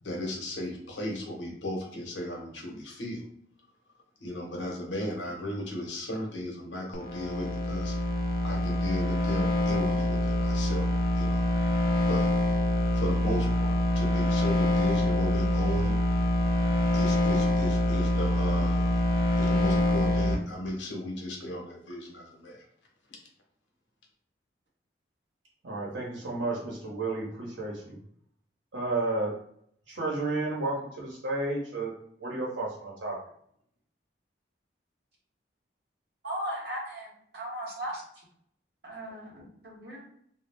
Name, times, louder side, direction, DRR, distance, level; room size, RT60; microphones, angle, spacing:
voice 1, 0.0-3.2 4.2-7.9 8.4-11.5 12.1-12.3 12.9-16.0 16.9-19.0 19.4-22.6, left 1 dB, 75° left, 0 dB, 0.8 m, -35 dB
sound 1, 6.9-20.4, left 1 dB, 50° left, 0.4 m, -25 dB
voice 2, 25.6-28.0 28.7-29.3 29.9-31.9 32.2-33.2, right 2 dB, 90° right, -3 dB, 0.9 m, -32 dB
voice 3, 36.2-37.1 37.3-38.0 38.8-40.0, right 1 dB, 60° right, -3 dB, 0.9 m, -36 dB
2.2 x 2.0 x 3.3 m, 0.67 s
head